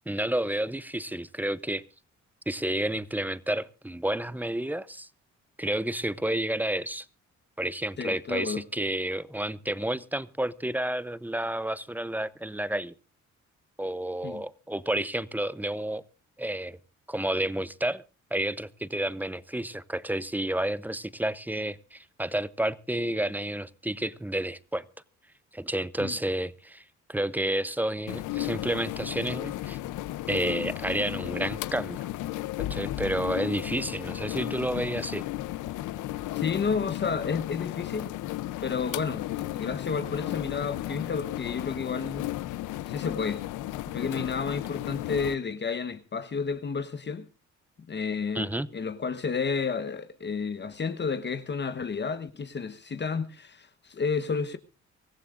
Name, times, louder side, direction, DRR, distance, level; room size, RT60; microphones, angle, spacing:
voice 1, 0.1-1.8 2.5-5.1 5.6-7.1 7.6-12.9 13.8-16.0 16.4-16.8 17.1-18.0 18.3-24.8 25.5-26.8 27.1-29.8 30.3-32.1 32.7-35.3 48.3-48.7, right 1 dB, 5° right, 0.7 m, -30 dB
voice 2, 8.0-8.6 14.2-14.4 26.0-26.1 36.3-38.1 38.6-42.3 42.9-43.4 43.9-47.2 47.9-54.6, left 5 dB, 35° left, 1.1 m, -31 dB
sound 1, 28.1-45.4, left 15 dB, 85° left, 0.7 m, -34 dB
24.5 x 15.0 x 2.5 m
cardioid pair, 90°, 30 cm